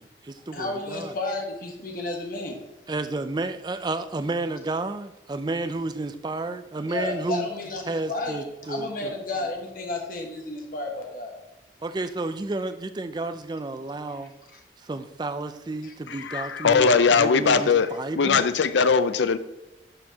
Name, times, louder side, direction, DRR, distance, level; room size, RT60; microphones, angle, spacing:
voice 1, 0.0-1.2 2.9-7.5 7.9-9.1 11.8-14.3 14.8-18.4, right 2 dB, 25° right, 10 dB, 0.3 m, -31 dB
voice 2, 0.5-2.6 6.9-11.3 14.5-14.6 15.8-15.9, left 2 dB, 50° left, 1 dB, 1.3 m, -32 dB
voice 3, 16.1-17.9 18.2-19.4, left 5 dB, 80° left, 13 dB, 0.5 m, -20 dB
11.5 x 4.4 x 2.8 m, 0.93 s
head